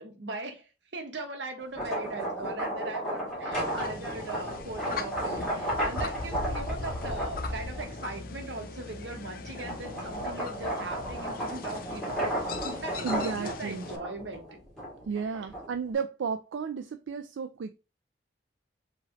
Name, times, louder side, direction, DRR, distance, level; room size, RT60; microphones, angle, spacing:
voice 1, 0.0-14.5 15.1-15.5, right 2 dB, 70° right, 1.0 m, -40 dB
sound 1, 1.6-8.2 8.7-15.9, right 1 dB, 5° left, 2.1 m, -34 dB
sound 2, 3.5-14.0, left 3 dB, 50° left, 0.5 m, -39 dB
voice 2, 13.0-13.9 15.0-17.7, right 5 dB, 90° right, 0.4 m, -33 dB
4.7 x 3.0 x 2.9 m
head